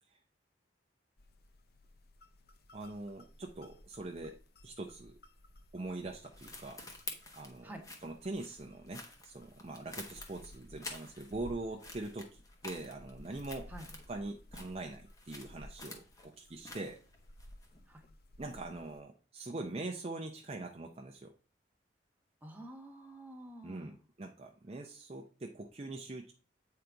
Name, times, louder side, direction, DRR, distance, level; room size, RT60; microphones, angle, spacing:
sound 1, 1.2-19.0, left 1 dB, 55° left, 0.7 m, -57 dB
voice 1, 2.7-4.4 4.6-5.1 5.7-6.8 7.3-7.7 8.0-13.7 14.1-17.0 18.4-21.3 23.6-26.3, right 2 dB, 35° right, 2 dB, 0.6 m, -43 dB
sound 2, 5.9-11.5 11.8-14.2 14.5-17.8, left 2 dB, 20° left, 1.1 m, -49 dB
voice 2, 22.4-24.0, right 1 dB, 10° right, 2 dB, 1.2 m, -49 dB
8.3 x 3.8 x 4.5 m, 0.36 s
head